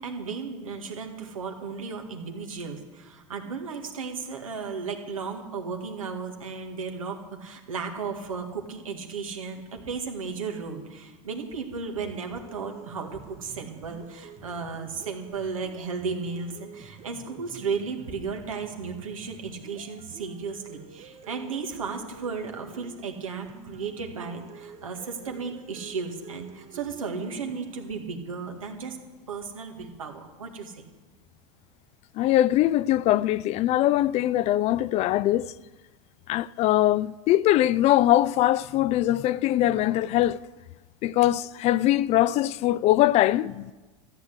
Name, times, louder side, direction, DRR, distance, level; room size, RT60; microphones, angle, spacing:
voice 1, 0.0-29.0 29.3-30.9, right 5 dB, 85° right, 1.9 m, -35 dB
sound 1, 12.0-28.0, right 7 dB, 40° right, 1.2 m, -48 dB
voice 2, 32.2-35.5 36.3-40.4 41.0-43.7, left 14 dB, 40° left, 0.4 m, -22 dB
14.0 x 8.1 x 8.2 m
hypercardioid pair, 95°, 17 cm